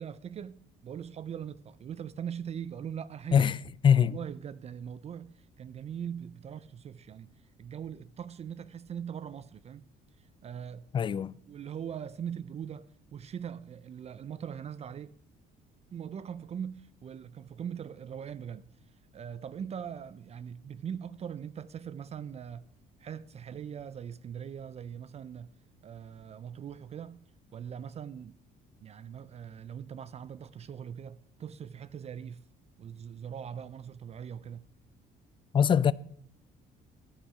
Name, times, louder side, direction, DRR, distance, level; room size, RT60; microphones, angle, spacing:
voice 1, 0.0-3.5 3.9-7.3 7.6-9.8 10.2-10.9 11.5-15.2 15.9-18.7 19.1-22.6 23.0-25.5 25.8-27.3 27.5-28.4 28.8-32.4 32.8-34.6, right 8 dB, 40° right, 0.5 m, -41 dB
voice 2, 3.8-4.2 10.9-11.3 35.5-35.9, left 8 dB, 30° left, 0.4 m, -22 dB
10.5 x 9.8 x 4.8 m
cardioid pair, 110°, 17 cm